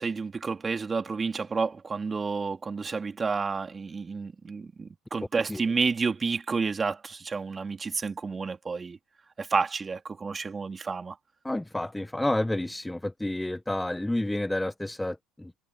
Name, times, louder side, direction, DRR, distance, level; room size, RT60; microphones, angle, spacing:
voice 1, 0.0-9.0 9.4-11.2, right 4 dB, 25° right, 3.3 m, -30 dB
voice 2, 11.4-15.6, left 1 dB, 5° left, 1.1 m, -30 dB
hypercardioid pair, 70°, 0 cm